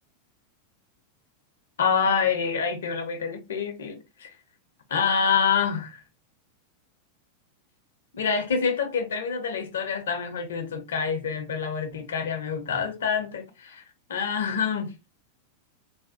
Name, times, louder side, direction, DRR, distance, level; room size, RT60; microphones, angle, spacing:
voice 1, 1.8-4.3 4.9-6.0 8.1-13.8 14.1-14.9, left 6 dB, 60° left, 0.7 m, -26 dB
3.4 x 2.1 x 2.7 m
figure-of-eight pair, 90°, 0 cm